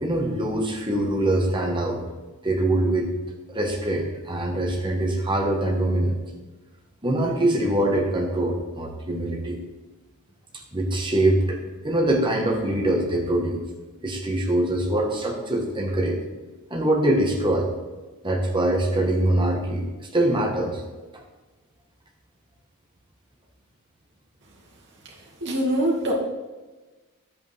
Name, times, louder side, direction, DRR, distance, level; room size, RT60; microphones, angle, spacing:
voice 1, 0.0-2.0 2.4-3.1 3.5-6.2 7.0-9.6 10.7-13.6 14.0-16.2 16.7-17.7 18.2-19.8 20.1-20.8, right 1 dB, 20° right, 0 dB, 1.6 m, -23 dB
voice 2, 25.4-26.1, right 1 dB, 55° right, -3 dB, 2.4 m, -23 dB
10.5 x 8.3 x 3.6 m, 1.2 s
head